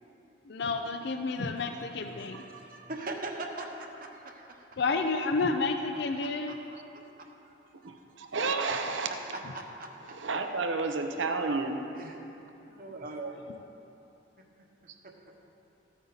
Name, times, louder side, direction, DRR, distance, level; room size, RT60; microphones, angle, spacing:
voice 1, 0.5-2.4 4.8-6.6, left 3 dB, 60° left, 5 dB, 0.5 m, -30 dB
voice 2, 1.3-1.7 2.0-4.8 6.2-6.6 6.9-7.5 8.3-8.4 8.9-10.2 11.9-12.2 12.7-13.4 14.4-14.5 15.0-15.3, right 2 dB, 50° right, 2 dB, 1.1 m, -42 dB
voice 3, 7.8-9.1 10.2-11.8, right 4 dB, 75° right, 5 dB, 0.8 m, -31 dB
14.5 x 8.9 x 4.0 m, 2.9 s
head